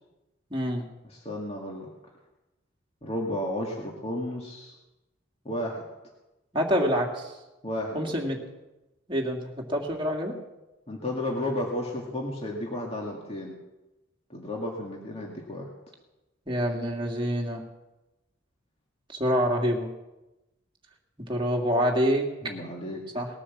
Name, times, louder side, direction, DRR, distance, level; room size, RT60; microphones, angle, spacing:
voice 1, 0.5-0.9 6.5-7.3 7.9-8.4 9.1-10.4 16.5-17.6 19.1-19.9 21.2-22.3 23.1-23.3, equal, 25° right, 0 dB, 2.3 m, -26 dB
voice 2, 1.0-1.9 3.0-4.7 5.4-5.8 7.6-8.2 10.9-13.6 14.3-15.7 22.4-23.0, left 1 dB, 30° left, -1 dB, 2.2 m, -33 dB
20.0 x 9.9 x 7.3 m, 1.0 s
head